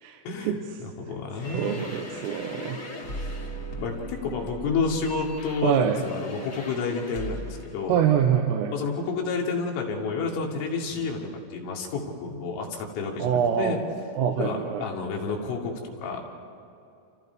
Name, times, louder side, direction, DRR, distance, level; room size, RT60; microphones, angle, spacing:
voice 1, 0.2-1.8 3.2-3.3 3.8-8.0 8.7-13.8 14.4-16.3, left 4 dB, 75° left, 0 dB, 5.0 m, -30 dB
sound 1, 1.3-7.7, equal, 50° left, 0.9 m, -38 dB
voice 2, 1.5-2.8 5.6-6.0 7.9-8.7 13.2-13.8 14.2-14.9, right 8 dB, 85° right, 2 dB, 3.7 m, -24 dB
29.5 x 28.0 x 4.7 m, 2.7 s
omnidirectional pair, 5.8 m